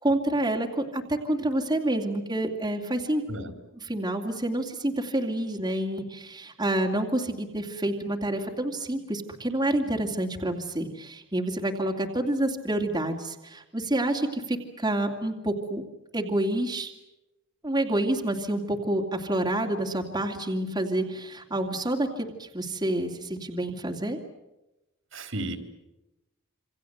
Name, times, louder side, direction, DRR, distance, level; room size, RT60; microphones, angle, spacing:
voice 1, 0.0-3.2 3.8-15.8 16.1-16.9 17.6-24.2, right 1 dB, 20° right, 1 dB, 2.5 m, -28 dB
voice 2, 25.1-25.6, right 1 dB, 65° right, 7 dB, 3.7 m, -33 dB
27.5 x 26.5 x 7.9 m, 0.96 s
head